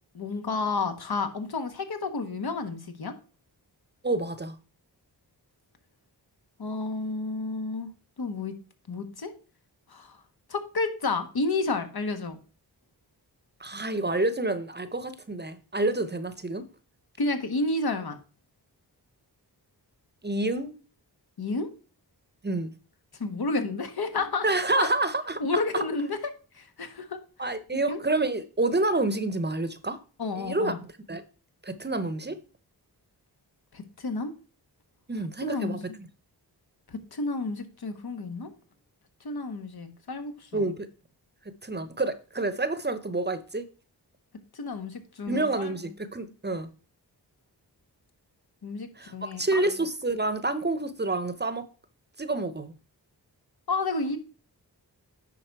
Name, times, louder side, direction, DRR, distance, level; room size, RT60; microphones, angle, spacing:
voice 1, 0.1-3.1 6.6-7.9 8.2-8.5 8.9-9.3 9.9-10.2 10.5-12.4 17.2-18.2 21.4-21.7 23.2-24.4 24.7-24.9 25.4-26.2 26.5-27.2 27.7-28.0 30.2-30.8 33.7-34.3 35.4-35.8 36.9-38.5 39.2-40.7 44.5-45.7 48.6-49.4 53.7-54.2, left 3 dB, 65° left, 1.3 m, -31 dB
voice 2, 4.0-4.5 13.6-16.6 20.2-20.7 22.4-22.7 24.4-25.4 25.7-25.8 27.4-30.0 30.4-30.7 31.1-31.2 31.6-32.4 35.1-36.1 40.5-40.9 41.5-43.7 45.3-46.7 49.0-51.7 52.2-52.7, right 2 dB, 25° right, 0.8 m, -28 dB
10.0 x 4.1 x 4.6 m
cardioid pair, 60°, 40 cm